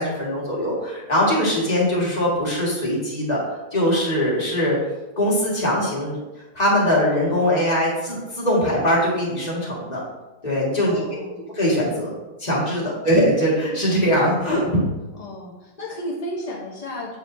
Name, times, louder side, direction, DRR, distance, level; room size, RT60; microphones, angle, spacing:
voice 1, 0.0-4.9 5.2-10.0 10.4-11.0 11.5-12.1 12.4-14.9, equal, 20° left, -5 dB, 1.7 m, -21 dB
voice 2, 10.8-11.4 12.8-13.1 15.1-17.2, left 1 dB, 50° left, -3 dB, 0.4 m, -33 dB
7.9 x 5.0 x 2.7 m, 1.1 s
omnidirectional pair, 2.1 m